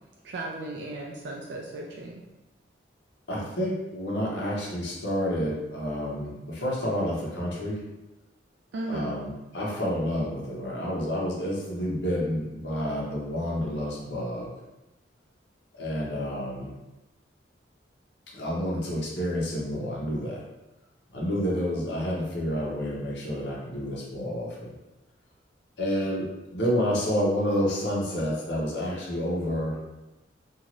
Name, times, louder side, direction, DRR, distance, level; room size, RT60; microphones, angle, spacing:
voice 1, 0.2-2.2 8.7-9.2, right 2 dB, 75° right, -2 dB, 0.4 m, -36 dB
voice 2, 3.3-7.8 8.9-14.5 15.7-16.7 18.3-20.4 21.1-24.7 25.8-29.8, equal, 70° left, -3 dB, 0.8 m, -29 dB
2.6 x 2.4 x 3.0 m, 1.0 s
head